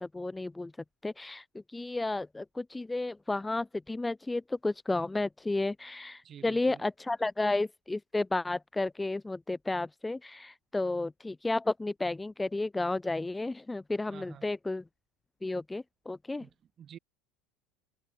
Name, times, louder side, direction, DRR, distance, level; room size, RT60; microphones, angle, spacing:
voice 1, 0.0-0.7 1.0-14.8 15.4-16.4, left 2 dB, 10° left, 0.5 m, -32 dB
voice 2, 6.2-6.9 14.1-14.5 16.4-17.0, right 9 dB, 40° right, 5.5 m, -50 dB
hypercardioid pair, 80°, 0 cm